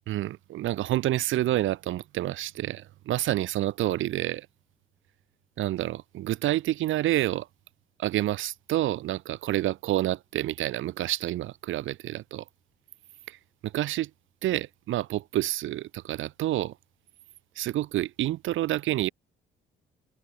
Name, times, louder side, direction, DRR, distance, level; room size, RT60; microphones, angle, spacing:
voice 1, 0.1-4.5 5.6-7.5 8.0-12.4 13.3-14.1 14.4-16.7 17.6-19.1, right 14 dB, 85° right, 1.9 m, -28 dB
cardioid pair, 90°, 20 cm